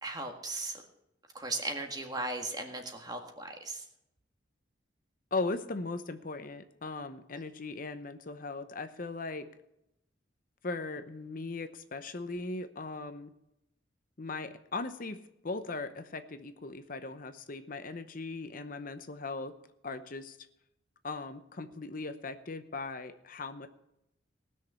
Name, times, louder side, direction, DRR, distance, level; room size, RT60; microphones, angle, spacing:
voice 1, 0.0-0.8 1.3-3.8, right 2 dB, 20° right, 4 dB, 1.7 m, -37 dB
voice 2, 5.3-9.5 10.6-13.3 14.2-19.5 19.8-20.4 21.0-23.7, left 3 dB, 45° left, 9 dB, 0.8 m, -38 dB
19.0 x 6.5 x 7.0 m, 0.83 s
head